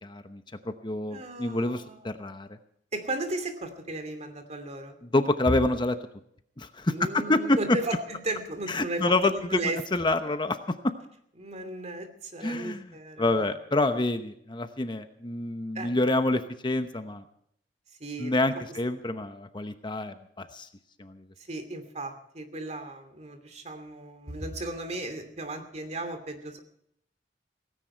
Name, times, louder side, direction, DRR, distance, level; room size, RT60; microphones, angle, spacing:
voice 1, 0.0-2.5 5.1-6.0 6.6-7.8 8.7-9.6 9.9-10.6 10.8-10.9 12.4-12.8 13.2-17.2 18.2-20.7 21.0-21.2, left 2 dB, 25° left, 9 dB, 0.9 m, -27 dB
voice 2, 1.1-2.1 2.9-5.0 6.8-9.8 11.4-13.5 15.7-15.9 18.0-18.3 18.7-18.8 21.4-26.6, right 2 dB, 40° right, 8 dB, 2.7 m, -36 dB
17.5 x 16.0 x 4.5 m, 0.71 s
head